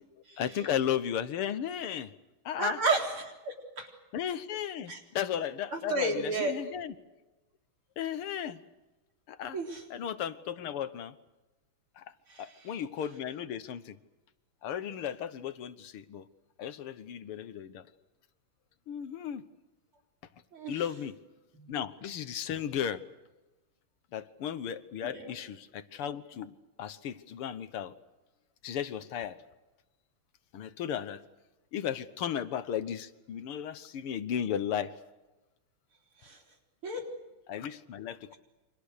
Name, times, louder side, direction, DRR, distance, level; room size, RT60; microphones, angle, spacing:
voice 1, 0.4-2.1 2.5-2.8 4.1-6.9 8.0-8.6 9.3-9.6 9.9-11.2 12.0-12.1 12.4-14.0 14.6-16.3 16.6-17.9 18.9-19.4 20.7-21.2 21.7-23.0 24.1-27.9 28.6-29.4 30.5-31.2 31.7-34.9 37.5-38.4, left 9 dB, 85° left, 12 dB, 2.1 m, -35 dB
voice 2, 2.6-3.9 4.9-5.0 5.7-6.6 9.5-9.8 12.3-12.7 20.5-20.8 21.5-21.8 25.0-25.3 36.2-36.4 36.8-37.0, right 2 dB, 75° right, 2 dB, 4.9 m, -32 dB
29.5 x 25.0 x 6.7 m, 1.1 s
omnidirectional pair, 2.4 m